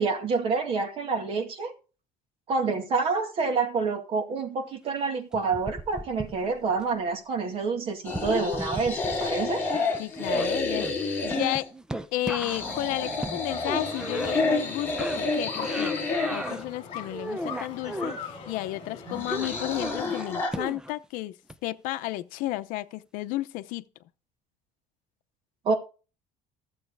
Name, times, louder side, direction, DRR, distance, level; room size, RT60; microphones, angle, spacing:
voice 1, 0.0-1.7 2.5-9.6 25.7-25.8, right 4 dB, 40° right, 2.1 m, -27 dB
sound 1, 5.3-6.8 8.1-9.5 9.7-14.7 15.0-16.6 17.0-18.2 19.3-21.0 21.5-21.6, right 1 dB, 5° right, 0.5 m, -36 dB
sound 2, 8.0-11.7 12.3-16.5 19.0-20.5, left 3 dB, 15° left, 3.8 m, -29 dB
voice 2, 10.0-10.9 11.2-11.7 12.1-21.3 21.6-23.8, left 16 dB, 70° left, 0.7 m, -32 dB
sound 3, 13.5-19.9, left 6 dB, 40° left, 4.1 m, -42 dB
14.5 x 7.4 x 4.7 m
cardioid pair, 175°, 14 cm